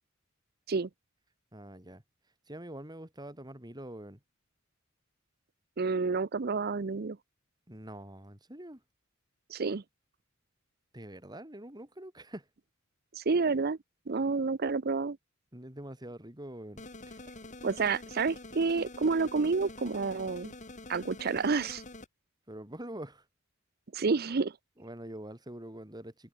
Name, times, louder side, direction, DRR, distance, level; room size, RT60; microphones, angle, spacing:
voice 1, 1.5-2.0 2.5-4.2 7.7-8.8 10.9-12.5 15.5-17.2 22.5-23.3 24.8-26.3, right 1 dB, 20° right, 3.6 m, -45 dB
voice 2, 5.8-7.2 9.5-9.8 13.2-13.8 14.1-15.2 17.6-20.5 20.9-21.8 23.9-24.6, right 4 dB, 50° right, 0.6 m, -29 dB
sound 1, 16.8-22.1, left 2 dB, 35° left, 3.2 m, -46 dB
head